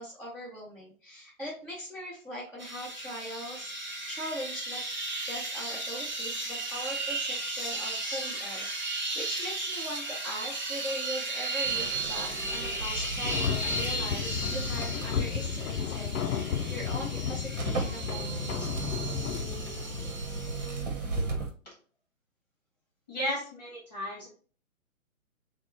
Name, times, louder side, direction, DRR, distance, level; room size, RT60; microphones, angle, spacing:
voice 1, 0.0-3.7 4.1-4.8 5.2-18.7, equal, 10° right, -12 dB, 1.3 m, -40 dB
sound 1, 2.6-20.8, right 2 dB, 35° right, 0.7 m, -35 dB
sound 2, 11.6-21.5, right 3 dB, 60° right, 1.2 m, -38 dB
sound 3, 13.2-20.6, left 7 dB, 90° left, 0.5 m, -33 dB
voice 2, 23.1-24.3, equal, 30° left, -2 dB, 1.3 m, -34 dB
6.3 x 2.4 x 2.8 m, 0.41 s
hypercardioid pair, 175°, 42 cm